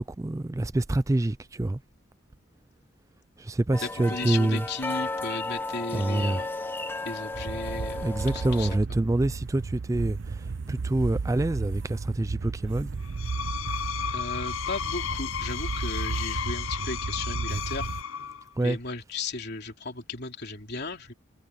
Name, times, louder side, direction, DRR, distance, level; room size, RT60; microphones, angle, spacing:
voice 1, 0.2-1.8 3.4-4.6 5.9-6.4 8.0-12.9 18.6-18.8, right 2 dB, 15° right, 0.4 m, -26 dB
sound 1, 3.7-8.8, left 2 dB, 10° left, 1.1 m, -34 dB
voice 2, 3.8-6.5 7.0-8.7 14.1-17.9 18.6-21.1, left 3 dB, 55° left, 3.4 m, -35 dB
sound 2, 7.3-18.0, right 4 dB, 65° right, 0.6 m, -34 dB
Screech, 13.0-18.5, left 9 dB, 80° left, 0.7 m, -34 dB
head